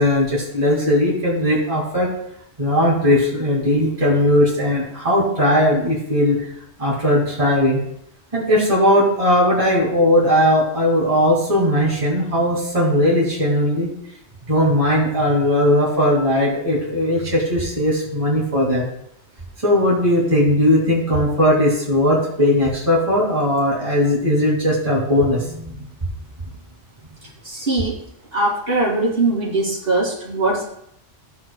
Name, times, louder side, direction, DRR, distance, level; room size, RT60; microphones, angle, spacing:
voice 1, 0.0-2.1 2.6-6.5 6.8-7.8 8.3-13.9 14.5-18.9 19.6-25.8, left 1 dB, 30° right, -5 dB, 2.5 m, -18 dB
voice 2, 27.4-28.0 28.3-30.6, right 2 dB, 50° right, -5 dB, 2.7 m, -21 dB
13.5 x 7.5 x 2.3 m, 0.73 s
omnidirectional pair, 1.3 m